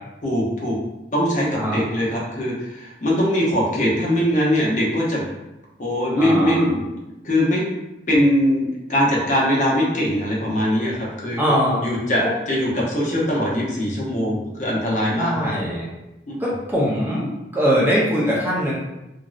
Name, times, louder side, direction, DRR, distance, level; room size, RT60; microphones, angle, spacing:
voice 1, 0.2-0.8 1.1-5.3 5.8-6.9 7.2-7.6 8.1-11.4 11.8-15.3 16.3-16.4, equal, 45° left, -4 dB, 0.7 m, -21 dB
voice 2, 6.2-6.7 11.4-11.8 15.2-15.9 16.4-18.7, equal, 10° right, -6 dB, 0.5 m, -21 dB
3.0 x 2.6 x 2.4 m, 0.96 s
head